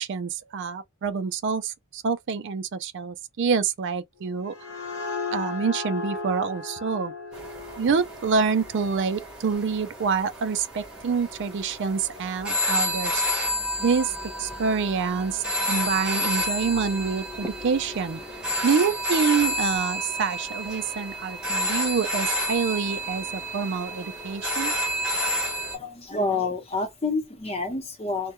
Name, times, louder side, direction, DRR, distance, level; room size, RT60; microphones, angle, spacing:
voice 1, 0.0-4.5 5.3-7.1 7.8-13.2 13.8-18.2 18.6-24.7, right 5 dB, 55° right, 0.4 m, -27 dB
sound 1, 4.2-9.7, left 4 dB, 70° left, 0.7 m, -36 dB
sound 2, 7.3-25.8, equal, 5° right, 0.8 m, -30 dB
voice 2, 25.7-28.3, left 3 dB, 25° left, 0.8 m, -28 dB
2.2 x 2.2 x 2.9 m
head